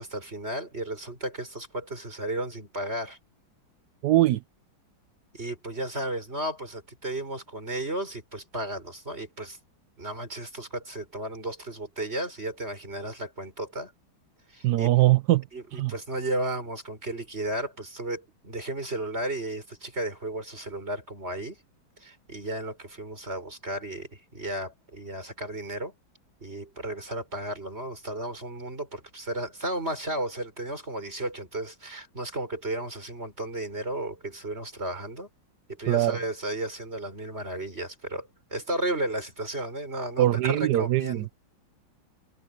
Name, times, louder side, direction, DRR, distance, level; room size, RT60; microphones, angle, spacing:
voice 1, 0.0-3.2 5.3-9.6 10.0-13.9 14.5-14.9 15.5-21.6 22.0-25.9 26.4-35.3 35.8-41.3, right 1 dB, 30° right, 6.1 m, -34 dB
voice 2, 4.0-4.4 14.6-15.4 15.7-15.9 35.9-36.2 40.2-41.2, right 15 dB, 70° right, 1.0 m, -22 dB
omnidirectional pair, 2.2 m